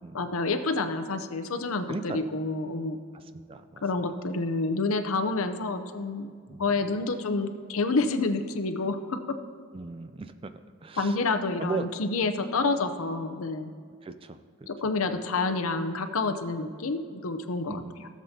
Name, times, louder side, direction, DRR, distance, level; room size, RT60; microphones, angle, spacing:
voice 1, 0.1-3.0 3.8-6.3 6.6-9.2 11.0-13.7 14.7-18.1, left 3 dB, 75° left, 8 dB, 0.7 m, -28 dB
voice 2, 1.9-2.3 3.1-3.8 6.5-6.7 9.7-10.5 10.8-11.2 11.6-11.9 14.0-14.4 17.7-18.0, right 4 dB, 25° right, 10 dB, 0.3 m, -37 dB
16.5 x 7.4 x 2.8 m, 2.1 s
head